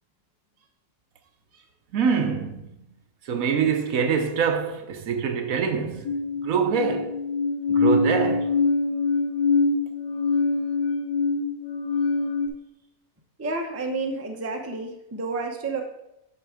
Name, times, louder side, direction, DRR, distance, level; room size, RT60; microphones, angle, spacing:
voice 1, 1.9-2.7 3.2-6.1 6.4-7.2 7.7-8.5, right 6 dB, 70° right, 1.1 m, -24 dB
sound 1, 6.1-12.5, left 4 dB, 90° left, 1.3 m, -24 dB
voice 2, 13.4-15.8, right 3 dB, 15° right, 0.5 m, -30 dB
7.5 x 4.9 x 4.8 m
omnidirectional pair, 1.6 m